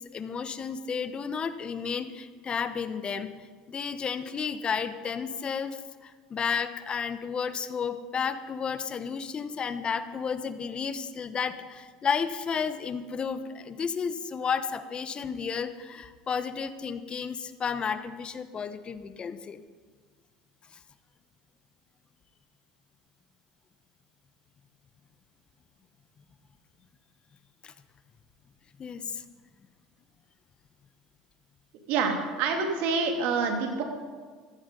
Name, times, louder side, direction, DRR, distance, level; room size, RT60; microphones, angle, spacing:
voice 1, 0.1-3.3 3.7-19.6 27.6-27.7 28.8-29.2, left 6 dB, 35° left, 11 dB, 1.1 m, -32 dB
voice 2, 31.9-33.8, right 4 dB, 65° right, 4 dB, 2.7 m, -27 dB
15.0 x 14.5 x 5.4 m, 1.5 s
hypercardioid pair, 85°, 3 cm